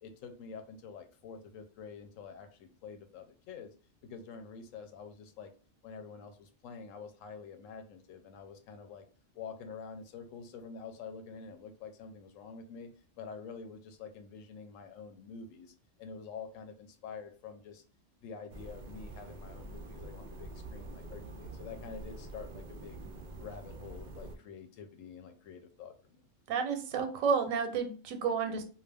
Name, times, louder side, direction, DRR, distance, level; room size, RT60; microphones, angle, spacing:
voice 1, 0.0-3.7 4.0-5.5 5.8-9.0 9.3-12.9 13.2-17.8 18.2-23.0 23.4-26.2, left 5 dB, 85° left, 7 dB, 1.0 m, -47 dB
sound 1, 18.5-24.4, right 2 dB, 70° right, 0.4 m, -46 dB
voice 2, 26.5-28.6, right 6 dB, 85° right, 7 dB, 1.0 m, -31 dB
2.3 x 2.2 x 3.3 m, 0.38 s
omnidirectional pair, 1.3 m